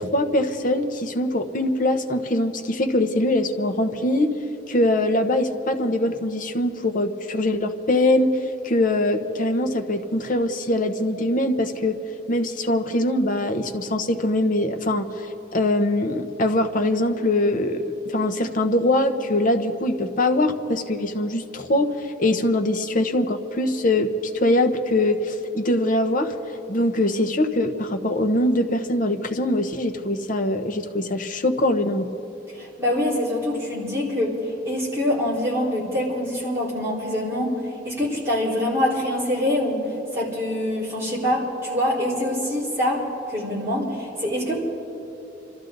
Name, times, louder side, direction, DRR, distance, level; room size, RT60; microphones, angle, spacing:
voice 1, 0.0-4.4 4.7-8.3 8.6-12.0 12.3-15.1 15.5-24.1 24.3-26.3 26.7-32.1, left 1 dB, 50° left, 6 dB, 0.9 m, -22 dB
voice 2, 32.5-34.3 34.6-37.5 37.8-39.8 40.1-44.6, left 1 dB, 15° right, -8 dB, 4.5 m, -25 dB
26.5 x 13.5 x 4.0 m, 3.0 s
head